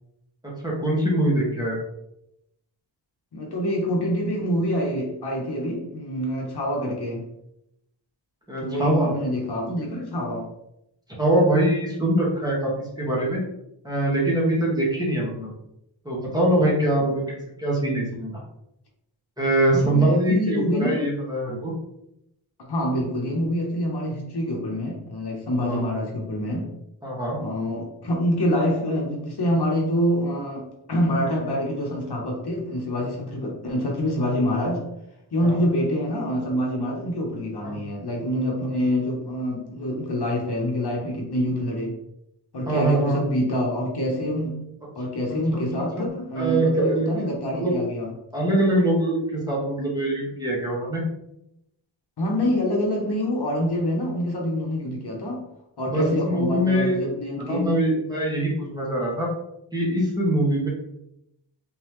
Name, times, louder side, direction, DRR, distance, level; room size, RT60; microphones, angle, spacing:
voice 1, 0.6-1.8 8.5-9.1 11.2-13.4 13.8-15.5 16.0-18.4 19.4-21.7 25.6-25.8 27.0-27.4 33.3-33.4 35.4-35.6 37.6-37.8 42.7-43.2 45.5-45.6 45.9-46.0 46.3-47.1 47.5-47.8 48.3-51.0 55.9-57.1 57.5-59.3 59.7-60.7, right 1 dB, 10° right, -5 dB, 1.3 m, -23 dB
voice 2, 3.3-7.2 8.6-10.5 19.7-21.0 22.7-26.7 27.4-34.8 35.3-42.0 42.5-44.6 45.0-48.1 52.2-55.4 55.8-57.7, equal, 55° left, -1 dB, 1.0 m, -26 dB
3.9 x 3.6 x 3.0 m, 0.82 s
wide cardioid pair, 140°, 48 cm